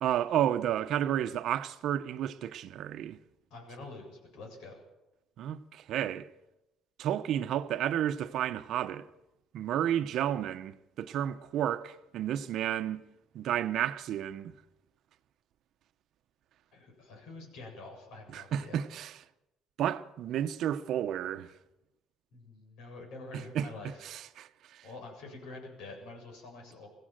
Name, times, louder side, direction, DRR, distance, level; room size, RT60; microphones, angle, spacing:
voice 1, 0.0-3.2 5.4-6.3 7.0-9.1 9.5-13.0 13.3-14.5 18.3-19.2 19.8-21.5 23.3-24.9, right 10 dB, 60° right, 0.9 m, -32 dB
voice 2, 3.5-4.8 16.7-18.8 22.3-23.9 24.8-26.9, left 3 dB, 80° left, 7.6 m, -47 dB
22.5 x 15.5 x 7.7 m
cardioid pair, 140°, 0 cm